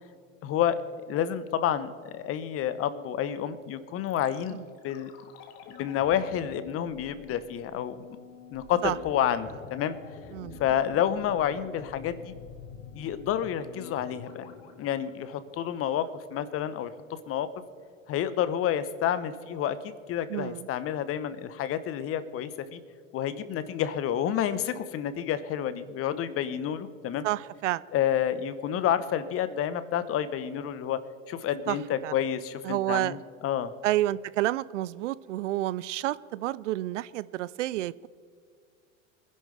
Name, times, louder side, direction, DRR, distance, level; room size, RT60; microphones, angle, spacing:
voice 1, 0.4-0.8 1.1-5.1 5.7-8.0 8.5-10.0 10.6-12.3 12.9-14.4 14.8-16.9 17.3-17.5 18.1-22.8 23.1-27.3 27.9-31.0 31.3-33.2 33.4-33.7, left 10 dB, 35° left, 14 dB, 1.0 m, -29 dB
sound 1, 4.1-16.1 16.3-16.4, left 7 dB, 50° left, 1.7 m, -47 dB
voice 2, 10.3-10.6 20.3-20.7 27.2-27.8 31.7-31.8 32.0-32.1 32.6-33.2 33.8-38.1, right 15 dB, 65° right, 19 dB, 0.5 m, -29 dB
24.5 x 11.0 x 3.4 m, 2.2 s
hypercardioid pair, 90°, 40 cm